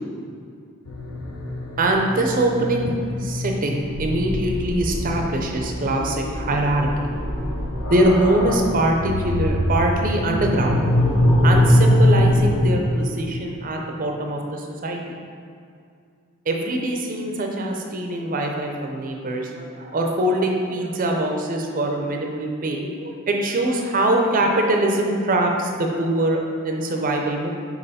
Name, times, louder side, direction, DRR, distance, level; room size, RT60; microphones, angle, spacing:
sound 1, 0.9-12.8, left 1 dB, 75° left, 0.8 m, -22 dB
voice 1, 1.8-6.9 7.9-11.0 11.4-15.0 16.5-26.4 26.6-27.5, right 1 dB, 40° right, 1 dB, 0.5 m, -23 dB
5.5 x 4.6 x 4.1 m, 2.3 s
head